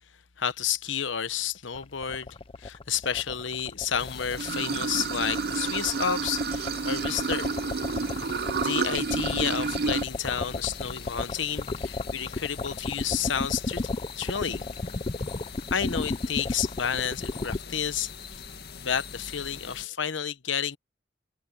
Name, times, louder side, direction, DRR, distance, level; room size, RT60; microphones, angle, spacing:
voice 1, 0.4-7.5 8.6-14.7 15.7-18.4 18.8-20.8, left 8 dB, 80° left, 1.0 m, -31 dB
sound 1, 1.8-17.6, left 3 dB, 30° left, 0.6 m, -33 dB
sound 2, 4.0-19.9, left 5 dB, 60° left, 2.1 m, -43 dB
Water / Sink (filling or washing), 4.4-10.0, right 5 dB, 55° right, 0.5 m, -30 dB
head